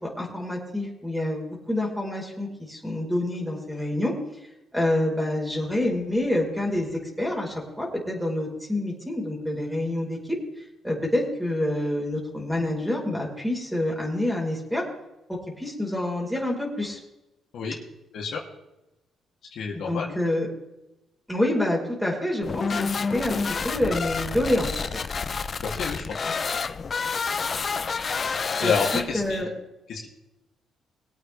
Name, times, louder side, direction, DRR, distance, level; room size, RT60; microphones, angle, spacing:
voice 1, 0.0-4.1 4.7-14.8 15.3-17.0 19.7-20.5 21.3-23.4 23.6-24.9 28.6-29.5, left 1 dB, ahead, -3 dB, 5.0 m, -27 dB
voice 2, 19.5-20.2 25.6-26.3 28.6-29.5 29.9-30.1, left 5 dB, 70° left, -2 dB, 3.1 m, -29 dB
sound 1, 22.4-29.4, left 5 dB, 40° left, 0.8 m, -29 dB
23.0 x 8.7 x 3.6 m, 0.93 s
cardioid pair, 90°, 0 cm